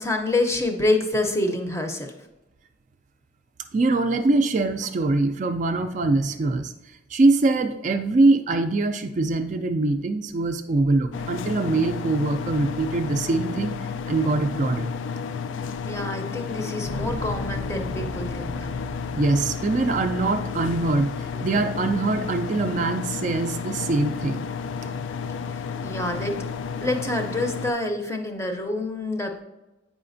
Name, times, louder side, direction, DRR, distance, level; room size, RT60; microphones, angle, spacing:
voice 1, 0.0-2.1 15.8-18.7 25.8-26.3 26.8-29.4, left 2 dB, 15° left, 4 dB, 0.6 m, -27 dB
voice 2, 3.7-6.7 7.1-13.7 14.1-14.9 19.2-21.1 21.4-24.4, right 2 dB, 40° right, 7 dB, 0.3 m, -23 dB
sound 1, 11.1-27.7, left 6 dB, 85° left, 0.3 m, -32 dB
Bass guitar, 16.8-26.5, equal, 55° left, 0.8 m, -40 dB
8.4 x 4.9 x 2.6 m, 1.0 s
head